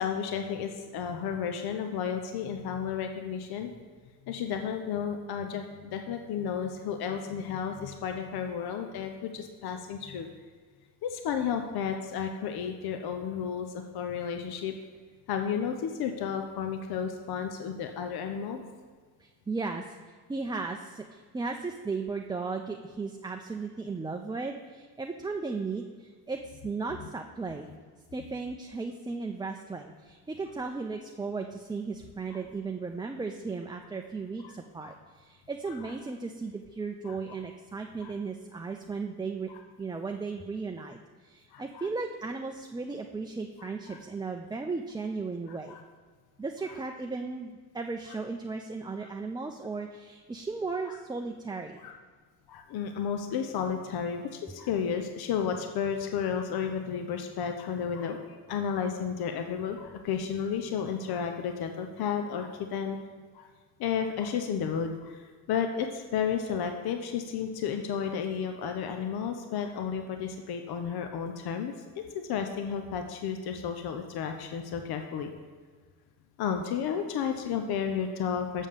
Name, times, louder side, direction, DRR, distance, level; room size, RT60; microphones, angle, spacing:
voice 1, 0.0-3.7 4.3-10.3 11.0-14.7 15.3-18.6 32.3-32.4 34.4-34.5 34.8-35.0 37.0-37.4 38.0-38.1 41.5-41.9 43.6-44.0 45.7-45.8 51.8-51.9 52.5-63.0 63.3-63.5 63.8-71.7 72.3-75.3 76.4-78.7, left 7 dB, 70° left, 5 dB, 0.8 m, -32 dB
voice 2, 19.2-27.7 28.1-39.5 39.8-45.8 46.4-51.9, right 4 dB, 10° right, 3 dB, 0.5 m, -36 dB
7.4 x 5.4 x 6.7 m, 1.5 s
cardioid pair, 95°, 39 cm